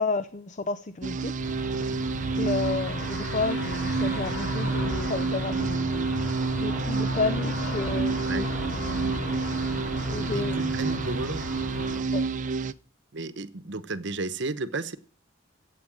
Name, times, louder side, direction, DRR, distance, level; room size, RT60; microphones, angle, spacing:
voice 1, 0.0-1.4 2.3-6.3 6.6-8.5 10.1-10.6 12.1-12.3, left 4 dB, 35° left, 0.6 m, -31 dB
sound 1, 1.0-12.7, right 4 dB, 40° right, 0.6 m, -29 dB
sound 2, 1.4-12.0, equal, 55° left, 5.7 m, -34 dB
voice 2, 10.3-11.4 13.1-15.0, right 3 dB, 60° right, 1.0 m, -33 dB
13.0 x 8.6 x 7.5 m
head